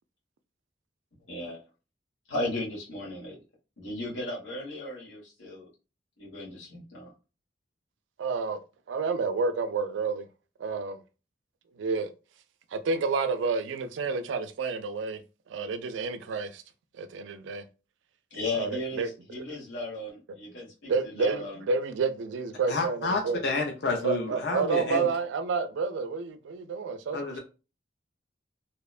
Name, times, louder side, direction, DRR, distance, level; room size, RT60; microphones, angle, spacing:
voice 1, 1.3-1.6 2.3-3.4 3.8-5.7 6.2-7.1 18.3-21.7, left 1 dB, 85° left, 1.1 m, -35 dB
voice 2, 8.2-8.6 8.9-10.3 10.6-11.0 11.8-12.1 12.7-15.2 15.5-16.6 17.0-17.6 18.5-19.1 19.3-19.4 20.9-23.4 24.0-27.4, right 4 dB, 85° right, 0.3 m, -29 dB
voice 3, 22.7-25.1 27.1-27.4, left 3 dB, 65° left, 0.5 m, -30 dB
2.8 x 2.1 x 2.3 m
head